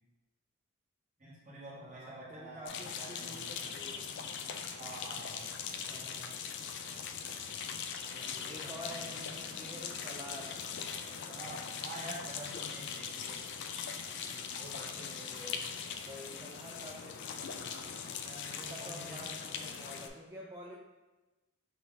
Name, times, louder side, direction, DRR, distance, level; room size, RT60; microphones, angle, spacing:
voice 1, 1.2-3.4 4.8-5.5 8.1-9.2 11.3-13.4 14.5-15.6 18.2-19.2, right 1 dB, 35° right, -7 dB, 1.4 m, -48 dB
voice 2, 1.8-4.1 5.8-6.8 8.5-10.6 14.2-14.6 16.0-17.8 18.5-20.7, equal, 15° right, -3 dB, 0.4 m, -49 dB
sound 1, 2.7-20.1, left 6 dB, 55° left, 0.4 m, -41 dB
5.5 x 2.4 x 3.8 m, 1.2 s
head